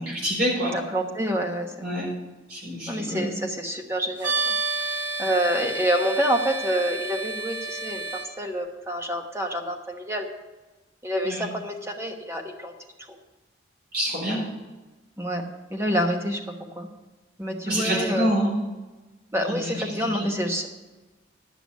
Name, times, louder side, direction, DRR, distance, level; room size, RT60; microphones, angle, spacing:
voice 1, 0.0-0.7 1.8-2.1 2.5-3.3 11.2-11.4 13.9-14.4 17.7-18.5 19.5-19.6 20.0-20.3, equal, 55° right, -4 dB, 4.0 m, -26 dB
voice 2, 0.7-2.1 2.9-4.5 5.2-10.3 11.0-12.7 15.2-15.4 15.7-16.4 16.8-16.9 17.4-18.3 19.3-20.7, equal, 15° right, 3 dB, 1.1 m, -27 dB
sound 1, 4.2-8.3, right 3 dB, 80° right, 2.1 m, -30 dB
11.0 x 6.0 x 8.2 m, 1.2 s
head